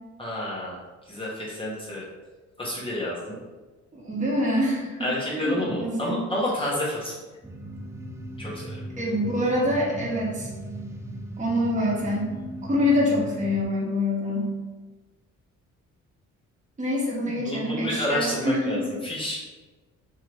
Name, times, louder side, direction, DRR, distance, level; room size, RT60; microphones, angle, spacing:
voice 1, 0.2-0.8 1.1-2.0 2.6-3.3 5.0-7.2 8.4-8.8 17.3-19.4, left 1 dB, 15° left, -5 dB, 1.4 m, -29 dB
voice 2, 3.9-6.3 9.0-10.5 11.4-12.3 12.6-14.5 16.8-18.8, left 1 dB, 25° right, -5 dB, 1.4 m, -25 dB
sound 1, 7.4-13.7, right 1 dB, 10° right, 0.4 m, -38 dB
3.6 x 3.2 x 3.1 m, 1.2 s
cardioid pair, 90°, 30 cm